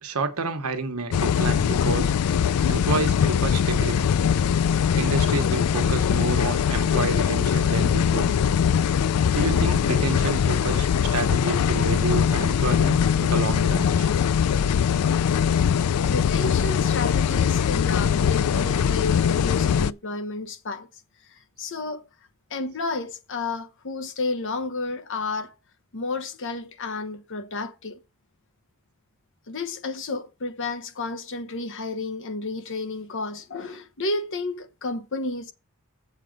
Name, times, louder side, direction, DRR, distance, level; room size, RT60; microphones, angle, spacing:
voice 1, 0.0-2.1 2.7-4.1 4.9-8.3 9.3-14.2, right 3 dB, 75° right, 1.2 m, -29 dB
sound 1, 1.1-19.9, left 7 dB, 80° left, 0.4 m, -22 dB
voice 2, 16.1-20.9 21.3-22.0 22.5-25.5 25.9-28.0 29.5-35.5, left 3 dB, 55° left, 1.0 m, -31 dB
7.5 x 4.9 x 6.5 m
head